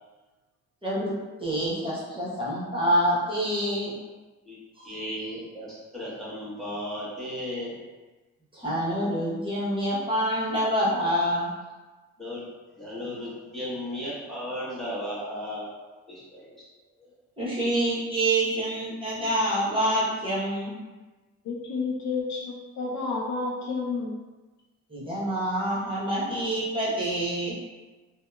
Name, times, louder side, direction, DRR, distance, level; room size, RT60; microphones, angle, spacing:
voice 1, 0.8-3.9 4.8-5.0 8.5-11.5 17.4-20.7 24.9-27.6, right 1 dB, 15° right, -8 dB, 0.9 m, -27 dB
voice 2, 4.8-7.7 12.2-12.5 12.8-15.7 16.1-16.5 17.0-17.1, equal, ahead, -9 dB, 1.2 m, -35 dB
voice 3, 21.4-24.2, left 4 dB, 55° left, -3 dB, 0.5 m, -30 dB
2.7 x 2.0 x 2.2 m, 1.2 s
supercardioid pair, 75°, 34 cm